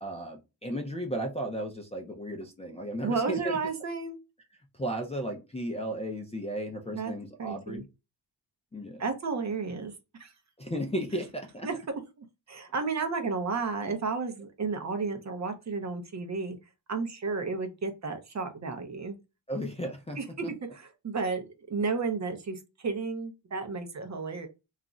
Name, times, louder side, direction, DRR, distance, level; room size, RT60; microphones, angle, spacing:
voice 1, 0.0-3.6 4.7-7.8 8.7-9.0 10.6-11.7 19.5-20.5, equal, 15° left, -1 dB, 0.4 m, -35 dB
voice 2, 3.0-4.2 6.9-7.1 7.4-7.8 9.0-9.9 10.2-10.3 11.6-11.7 12.2-16.6 16.9-19.2 20.2-24.5, right 4 dB, 40° right, 6 dB, 0.5 m, -32 dB
2.4 x 2.0 x 3.6 m, 0.27 s
wide cardioid pair, 150°, 45 cm